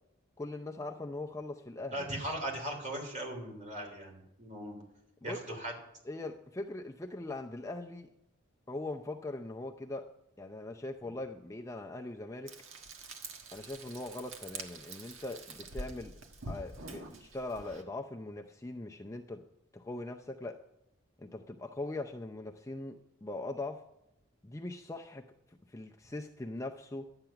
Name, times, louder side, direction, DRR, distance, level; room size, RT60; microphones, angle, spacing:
voice 1, 0.4-2.1 5.2-5.6 6.1-8.1 8.7-10.1 10.4-12.6 13.5-16.2 16.5-19.4 19.7-20.6 21.2-23.8 24.4-27.1, left 2 dB, 15° left, 3 dB, 0.5 m, -41 dB
voice 2, 1.9-4.8 5.2-5.7, right 1 dB, 35° right, 2 dB, 3.3 m, -38 dB
Frying (food), 12.5-17.8, right 2 dB, 75° right, 1.4 m, -46 dB
12.0 x 8.9 x 5.8 m, 0.84 s
head